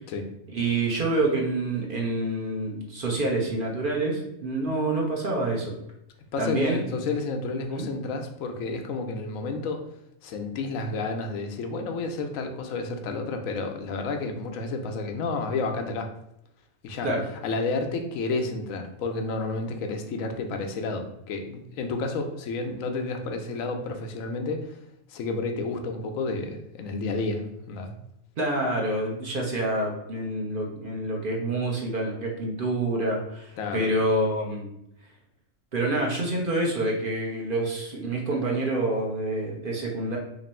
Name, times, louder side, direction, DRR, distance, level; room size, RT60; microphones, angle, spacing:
voice 1, 0.5-5.7 6.4-6.8 7.8-7.9 17.0-17.2 28.4-34.6 35.7-40.2, right 2 dB, 50° right, 0 dB, 0.8 m, -27 dB
voice 2, 6.3-9.8 10.2-16.1 16.8-17.1 17.4-24.8 25.1-27.9 33.6-33.9, left 3 dB, 90° left, 5 dB, 1.0 m, -31 dB
3.0 x 2.6 x 4.2 m, 0.80 s
omnidirectional pair, 1.3 m